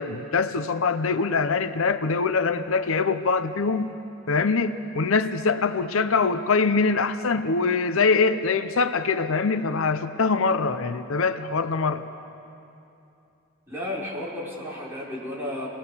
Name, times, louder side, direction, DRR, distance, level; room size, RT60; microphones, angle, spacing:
voice 1, 0.0-3.9 4.3-12.0, left 4 dB, 70° left, 10 dB, 0.7 m, -23 dB
voice 2, 13.7-15.7, left 1 dB, 10° right, -6 dB, 4.9 m, -33 dB
28.5 x 20.0 x 7.0 m, 2.8 s
head